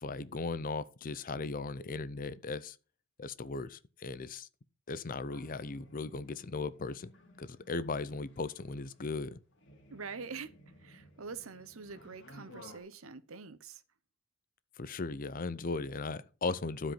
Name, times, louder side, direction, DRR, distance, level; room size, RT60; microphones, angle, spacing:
voice 1, 0.0-2.8 3.2-4.5 4.9-7.1 7.4-9.4 14.8-16.9, left 3 dB, 40° left, 0.6 m, -37 dB
sound 1, 5.3-12.8, left 1 dB, 60° left, 2.5 m, -57 dB
voice 2, 9.9-10.5 10.8-13.8, right 5 dB, 75° right, 0.8 m, -45 dB
12.0 x 5.1 x 5.7 m
head